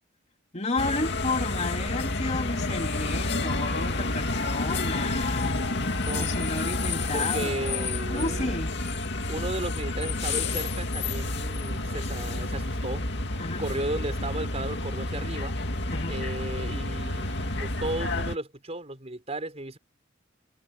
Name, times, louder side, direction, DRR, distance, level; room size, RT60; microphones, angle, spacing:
voice 1, 0.5-5.9 6.2-8.7 13.4-13.6 15.9-16.2, left 2 dB, 35° left, 3.2 m, -32 dB
sound 1, 0.8-18.4, left 2 dB, 65° left, 2.5 m, -29 dB
voice 2, 7.1-8.5 9.3-13.1 13.6-15.5 16.1-19.8, right 2 dB, 35° right, 5.2 m, -34 dB
head